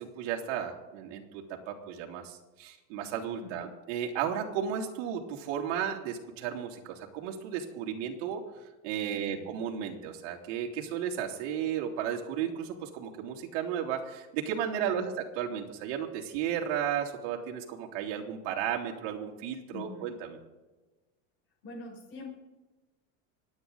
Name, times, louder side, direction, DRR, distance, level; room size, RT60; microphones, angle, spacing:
voice 1, 0.0-8.4 8.8-20.4, right 9 dB, 60° right, 0 dB, 2.8 m, -34 dB
voice 2, 3.4-3.7 9.1-9.5 14.8-15.1 19.7-20.1 21.6-22.3, left 4 dB, 55° left, -1 dB, 5.5 m, -44 dB
26.5 x 9.4 x 3.9 m, 1.2 s
supercardioid pair, 160°, 37 cm